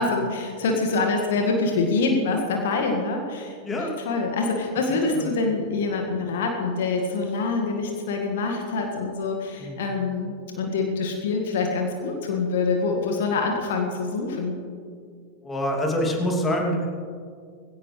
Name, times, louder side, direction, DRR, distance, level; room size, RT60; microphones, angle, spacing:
voice 1, 0.0-14.6, left 3 dB, 55° left, 2 dB, 1.9 m, -25 dB
voice 2, 4.9-5.3 9.6-9.8 15.4-16.9, equal, 15° left, 0 dB, 2.7 m, -26 dB
20.0 x 17.0 x 3.3 m, 2.2 s
figure-of-eight pair, 90°, 0 cm